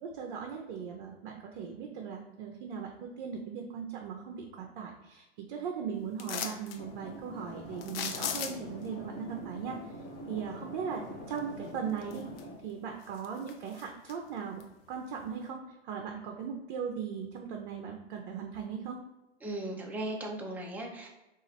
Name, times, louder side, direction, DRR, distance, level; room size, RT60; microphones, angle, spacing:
voice 1, 0.0-9.8 10.3-12.3 12.6-19.0, right 7 dB, 50° right, 2 dB, 0.6 m, -38 dB
sound 1, 6.2-6.8 7.8-8.8 11.4-11.5 12.0-12.7 13.0-14.1 14.6-14.7, left 8 dB, 60° left, 0.5 m, -37 dB
sound 2, 6.8-12.5, left 1 dB, 30° left, 0.9 m, -45 dB
voice 2, 19.4-21.1, right 1 dB, 5° right, 0 dB, 0.3 m, -37 dB
3.0 x 2.4 x 4.0 m, 1.0 s
hypercardioid pair, 105°, 34 cm